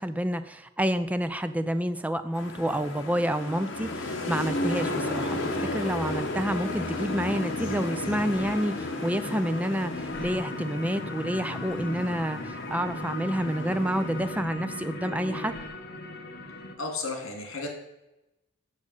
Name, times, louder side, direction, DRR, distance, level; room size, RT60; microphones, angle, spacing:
voice 1, 0.0-5.4 5.7-15.5, equal, 5° right, 10 dB, 0.4 m, -29 dB
sound 1, 2.3-14.4, left 2 dB, 70° left, 1.5 m, -34 dB
sound 2, 5.1-16.7, left 1 dB, 55° left, 1.2 m, -37 dB
voice 2, 16.8-17.7, left 3 dB, 85° left, 3 dB, 2.3 m, -33 dB
7.3 x 6.7 x 6.5 m, 0.94 s
head